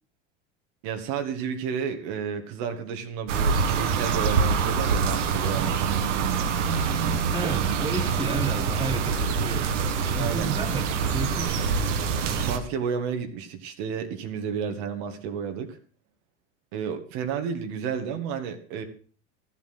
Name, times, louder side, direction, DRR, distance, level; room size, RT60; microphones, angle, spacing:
voice 1, 0.8-6.0 7.4-7.5 10.2-10.5 12.4-15.8 16.7-18.8, right 7 dB, 65° right, 6 dB, 2.1 m, -31 dB
sound 1, 3.3-12.6, right 5 dB, 80° right, 1.8 m, -25 dB
voice 2, 7.3-11.9, right 3 dB, 15° right, 5 dB, 2.0 m, -32 dB
13.0 x 8.4 x 6.1 m, 0.41 s
hypercardioid pair, 100°, 36 cm